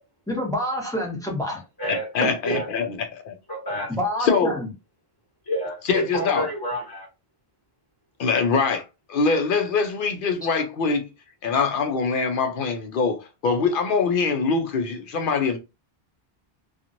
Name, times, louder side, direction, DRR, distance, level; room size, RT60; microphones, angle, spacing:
voice 1, 0.3-1.6 2.2-2.3 3.9-4.7, left 1 dB, 5° left, 0.8 m, -27 dB
voice 2, 1.9-3.4 4.2-4.5 5.8-6.5 8.2-8.8 9.1-11.1 11.4-15.6, left 5 dB, 60° left, 0.7 m, -23 dB
voice 3, 3.5-3.9 5.5-7.1, equal, 20° left, 1.2 m, -28 dB
2.9 x 2.4 x 2.5 m
omnidirectional pair, 1.1 m